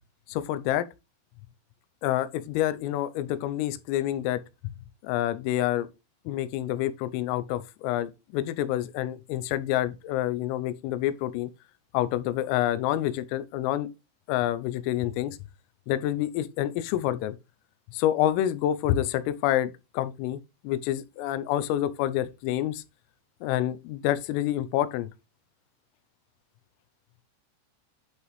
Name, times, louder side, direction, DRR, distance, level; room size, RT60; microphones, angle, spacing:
voice 1, 0.3-0.9 2.0-4.4 5.0-5.9 6.3-11.5 11.9-13.9 14.3-15.4 15.9-17.4 17.9-22.8 23.4-25.1, left 13 dB, 90° left, 3.3 m, -28 dB
11.5 x 4.9 x 3.2 m
omnidirectional pair, 5.8 m